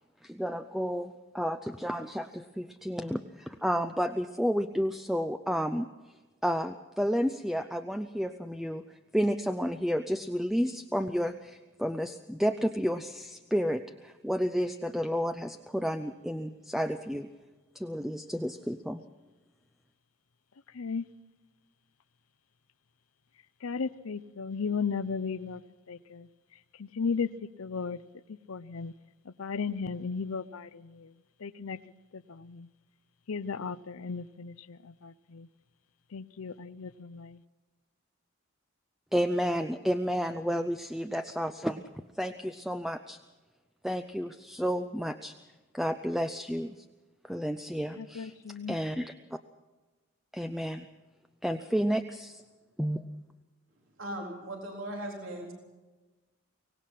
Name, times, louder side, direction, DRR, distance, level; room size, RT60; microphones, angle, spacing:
voice 1, 0.2-17.3 17.7-19.0 39.1-41.8 42.1-43.2 43.8-45.3 45.7-46.8 47.2-49.4 50.3-50.9 51.4-52.4 52.8-53.0, equal, ahead, 8 dB, 0.5 m, -31 dB
voice 2, 20.7-21.1 23.6-25.6 25.9-26.3 26.7-28.0 28.3-28.9 29.2-31.1 31.4-31.8 32.1-32.7 33.3-35.5 36.1-37.4 48.0-48.8, left 5 dB, 85° left, 14 dB, 0.6 m, -35 dB
voice 3, 54.0-55.5, right 1 dB, 70° right, 0 dB, 4.0 m, -38 dB
24.5 x 18.5 x 5.8 m, 1.2 s
head